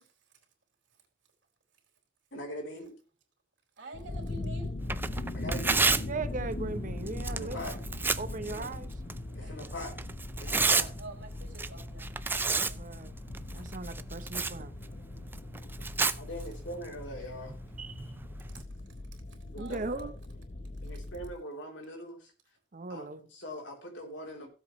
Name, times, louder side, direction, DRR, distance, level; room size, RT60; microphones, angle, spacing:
voice 1, 2.3-2.9 5.3-6.1 7.3-7.8 8.5-8.7 9.3-10.0 10.4-10.9 16.2-17.6 18.0-18.1 19.5-20.1 20.8-22.3 22.9-24.5, equal, 80° left, 3.4 m, -42 dB
voice 2, 3.8-4.7 7.5-7.8 9.4-9.7 10.5-10.7 11.0-12.1 12.4-12.8 19.1-19.8, right 2 dB, 80° right, 3.9 m, -47 dB
sound 1, 3.9-21.3, left 2 dB, 45° left, 0.8 m, -40 dB
Tearing, 4.8-18.6, right 4 dB, 10° right, 0.4 m, -34 dB
voice 3, 5.9-7.6 8.2-8.9 12.7-13.1 13.5-14.7 17.8-18.0 19.6-20.1 22.7-23.2, right 3 dB, 45° right, 0.8 m, -38 dB
16.5 x 7.9 x 3.1 m
head